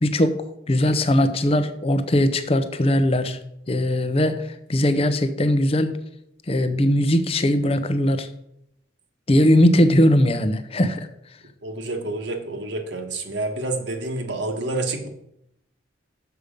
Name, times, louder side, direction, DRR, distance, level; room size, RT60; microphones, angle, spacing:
voice 1, 0.0-3.4 3.7-6.0 6.5-8.3 9.3-11.1, left 1 dB, 30° left, 0.6 m, -20 dB
voice 2, 11.6-15.1, right 2 dB, 65° right, 1.2 m, -28 dB
6.9 x 6.4 x 5.1 m
head